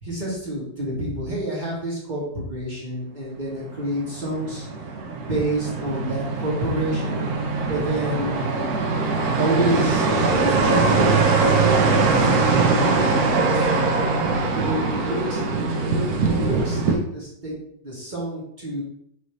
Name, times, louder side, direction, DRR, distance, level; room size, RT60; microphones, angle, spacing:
voice 1, 0.0-4.7 5.1-7.2 7.7-8.5 9.4-13.9 14.5-15.4 15.8-17.6 17.8-18.8, right 1 dB, 30° right, -5 dB, 1.0 m, -29 dB
sound 1, 3.5-17.0, right 3 dB, 65° right, 1.0 m, -22 dB
6.3 x 2.7 x 3.2 m, 0.72 s
omnidirectional pair, 2.2 m